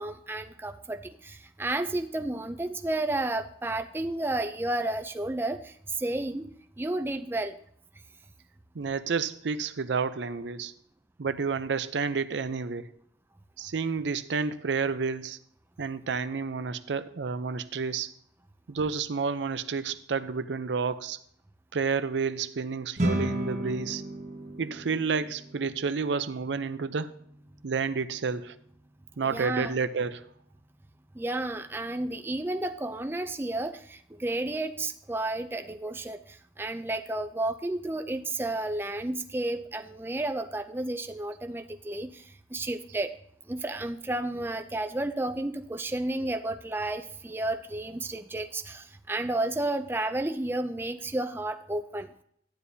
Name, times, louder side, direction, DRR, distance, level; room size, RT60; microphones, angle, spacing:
voice 1, 0.0-6.5 6.8-7.6 29.2-29.7 31.1-43.1 43.5-52.1, right 2 dB, 10° right, 7 dB, 0.4 m, -32 dB
voice 2, 8.7-10.7 11.2-13.0 13.6-15.4 15.8-18.1 18.7-21.2 21.7-24.0 24.6-27.2 27.6-28.6 29.2-30.3, right 5 dB, 80° right, 12 dB, 0.5 m, -30 dB
sound 1, 23.0-32.4, right 1 dB, 40° right, 1.2 m, -37 dB
12.0 x 9.7 x 2.7 m, 0.65 s
head